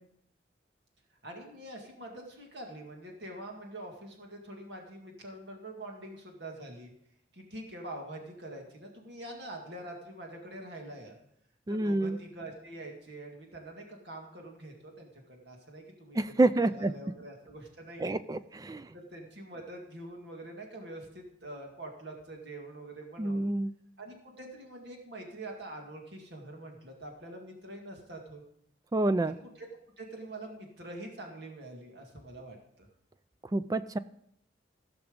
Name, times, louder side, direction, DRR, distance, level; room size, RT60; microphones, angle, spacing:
voice 1, 1.2-6.9 7.3-11.2 11.7-18.2 18.9-23.5 24.0-28.4 29.4-29.7 30.0-32.9, right 1 dB, 65° right, 1 dB, 2.1 m, -45 dB
voice 2, 11.7-12.2 16.2-16.9 18.0-18.9 23.2-23.7 28.9-29.4 33.5-34.0, right 2 dB, 20° right, 13 dB, 0.3 m, -28 dB
16.0 x 6.1 x 5.3 m, 0.72 s
head